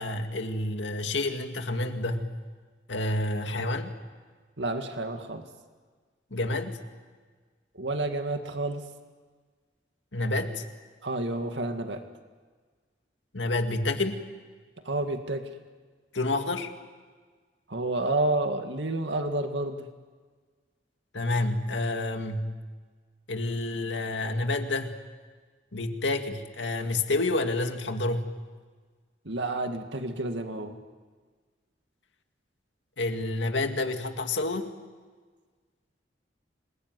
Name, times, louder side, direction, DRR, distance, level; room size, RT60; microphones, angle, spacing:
voice 1, 0.0-2.3 2.9-4.0 6.3-6.8 10.1-10.6 13.3-14.2 16.1-16.7 21.1-22.5 23.3-25.0 25.7-28.3 33.0-34.7, left 2 dB, 90° left, 5 dB, 2.2 m, -29 dB
voice 2, 4.6-5.4 7.8-8.8 11.0-12.0 14.9-15.5 17.7-19.9 29.3-30.8, right 2 dB, 80° right, 6 dB, 2.0 m, -30 dB
27.0 x 21.0 x 9.5 m, 1.5 s
head